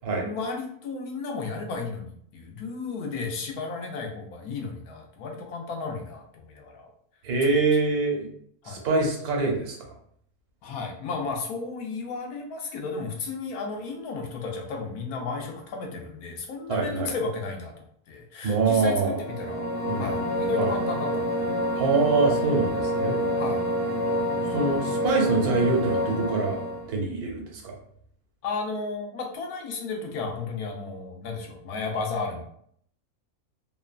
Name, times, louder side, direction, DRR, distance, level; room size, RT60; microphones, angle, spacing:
voice 1, 0.1-6.9 7.4-7.5 8.6-8.9 10.6-18.9 19.3-19.7 20.0-21.4 23.3-23.6 28.4-32.4, left 4 dB, 80° left, 2 dB, 1.1 m, -33 dB
voice 2, 7.2-8.3 8.6-9.8 16.7-17.1 18.4-19.2 19.9-20.2 20.6-20.7 21.8-23.2 24.5-26.5 26.9-27.7, right 3 dB, 85° right, 1 dB, 1.2 m, -24 dB
sound 1, 19.1-26.9, equal, 60° right, 0.6 m, -27 dB
3.0 x 2.2 x 2.3 m, 0.64 s
omnidirectional pair, 1.6 m